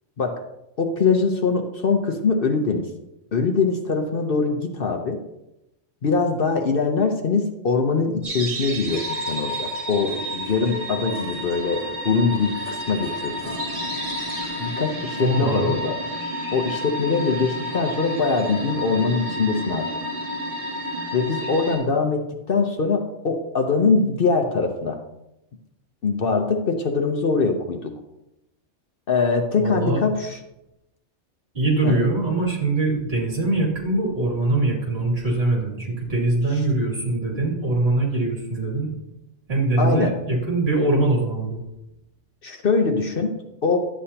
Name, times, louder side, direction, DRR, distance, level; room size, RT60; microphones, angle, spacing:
voice 1, 0.8-2.9 3.3-5.2 6.0-13.4 14.6-16.0 16.5-19.9 21.1-25.0 26.0-27.9 29.1-30.4 31.8-31.9 39.8-40.1 42.4-43.3 43.6-43.8, left 4 dB, 50° left, 4 dB, 1.0 m, -22 dB
sound 1, 8.2-21.8, equal, 30° right, 2.1 m, -30 dB
voice 2, 15.2-15.7 29.6-30.0 31.5-38.9 39.5-41.6, right 2 dB, 55° right, -3 dB, 2.9 m, -22 dB
11.0 x 8.3 x 2.9 m, 0.91 s
omnidirectional pair, 1.3 m